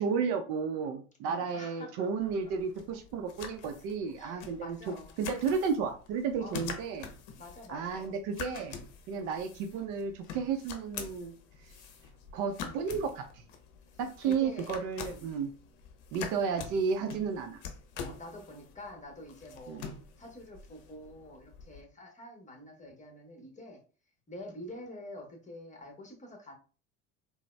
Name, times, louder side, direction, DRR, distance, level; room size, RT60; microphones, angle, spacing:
voice 1, 0.0-4.8 5.2-7.1 7.7-8.8 9.1-11.3 12.3-13.4 14.0-15.5 16.1-17.6 19.7-19.8, right 6 dB, 50° right, 7 dB, 0.5 m, -32 dB
voice 2, 1.2-2.5 4.2-5.2 6.4-6.6 7.4-8.2 9.1-9.4 13.9-15.3 18.0-19.9 20.2-23.8 24.3-26.6, left 1 dB, 20° left, 2 dB, 0.9 m, -47 dB
sound 1, 2.2-21.8, left 6 dB, 65° left, 0.7 m, -46 dB
3.9 x 2.0 x 2.2 m, 0.37 s
hypercardioid pair, 70°, 40 cm